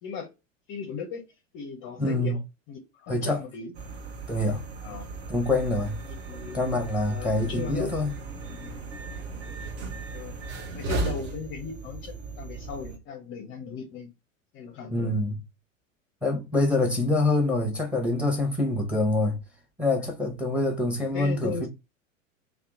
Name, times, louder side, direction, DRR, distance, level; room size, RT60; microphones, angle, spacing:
voice 1, 0.0-0.3 0.7-1.2 1.5-2.4 2.7-3.7 4.8-5.1 6.1-6.6 7.1-7.9 8.4-8.8 10.1-10.3 10.7-14.1 14.5-15.2 21.1-21.7, left 5 dB, 30° left, 0.5 m, -37 dB
voice 2, 2.0-2.3 3.1-3.4 4.3-4.6 5.3-6.0 6.5-8.1 14.9-15.4 16.2-19.4 19.8-21.7, left 2 dB, 5° right, 0.8 m, -25 dB
sound 1, 3.7-13.0, right 3 dB, 50° right, 0.9 m, -36 dB
2.8 x 2.1 x 3.5 m
figure-of-eight pair, 90°, 40 cm